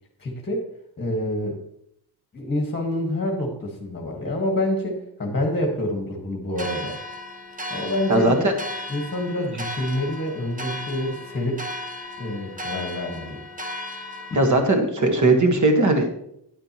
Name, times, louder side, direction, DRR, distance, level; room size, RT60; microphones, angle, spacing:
voice 1, 0.2-0.7 1.0-1.6 2.3-6.9 7.7-8.4 8.9-11.7 12.2-13.4, left 1 dB, 25° left, 1 dB, 1.5 m, -27 dB
sound 1, 6.6-14.8, left 1 dB, 20° right, 0.9 m, -35 dB
voice 2, 8.1-8.5 14.3-16.2, right 2 dB, 40° right, 4 dB, 1.6 m, -19 dB
10.0 x 8.9 x 3.0 m, 0.74 s
cardioid pair, 120°, 46 cm